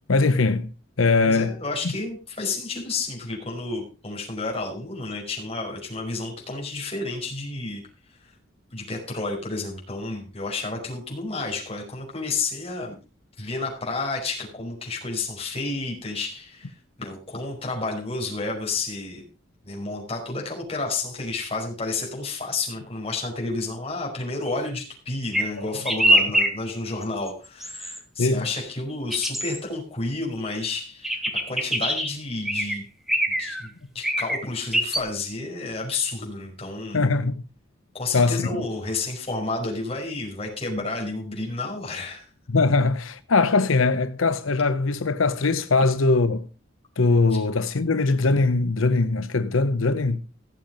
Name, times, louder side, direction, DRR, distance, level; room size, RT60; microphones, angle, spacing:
voice 1, 0.1-0.7 1.0-1.6 28.2-28.5 36.9-37.4 38.1-38.6 42.5-46.5 47.0-50.2, left 3 dB, 90° left, 0.8 m, -21 dB
voice 2, 1.2-7.8 8.1-8.3 8.7-13.0 13.4-19.2 19.6-32.9 33.4-37.0 37.9-42.3 47.3-47.4, left 3 dB, 30° left, 5.4 m, -31 dB
sound 1, 25.3-25.5 25.9-26.5 27.0-27.3 27.6-28.0 29.1-29.6 31.0-32.1 32.5-32.8 33.1-33.7 34.0-34.4 34.7-35.0, equal, ahead, 1.7 m, -23 dB
17.0 x 7.4 x 5.2 m
head